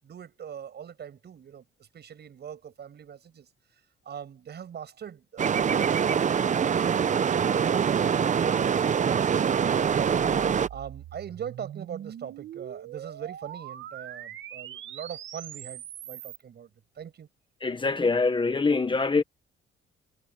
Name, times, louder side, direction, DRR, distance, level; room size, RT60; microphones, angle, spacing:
voice 1, 0.0-10.1 10.7-16.7 17.0-17.3, right 8 dB, 55° right, 7.5 m, -42 dB
sound 1, 5.4-10.7, right 7 dB, 40° right, 0.7 m, -24 dB
sound 2, 9.7-16.4, right 11 dB, 70° right, 1.8 m, -42 dB
voice 2, 17.6-19.2, left 4 dB, 25° left, 1.4 m, -24 dB
cardioid pair, 90°, 20 cm